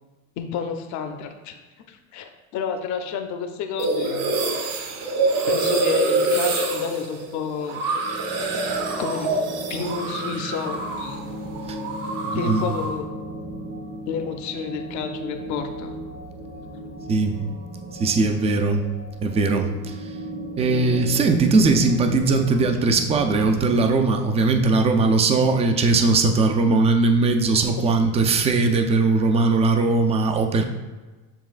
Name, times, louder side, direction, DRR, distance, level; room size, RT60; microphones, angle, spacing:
voice 1, 0.4-1.6 1.9-4.3 5.5-7.9 9.0-9.4 9.7-11.2 12.3-13.1 14.1-15.9, left 7 dB, 55° left, 6 dB, 0.7 m, -30 dB
sound 1, 3.8-11.2 11.4-13.0, right 3 dB, 70° right, 1.0 m, -25 dB
sound 2, 7.4-23.9, right 1 dB, 40° right, 0.9 m, -36 dB
voice 2, 12.3-12.6 17.1-17.4 17.9-18.9 19.2-19.9 20.6-30.6, right 3 dB, 20° right, 5 dB, 0.3 m, -19 dB
7.2 x 3.1 x 2.4 m, 1.3 s
cardioid pair, 125°, 35 cm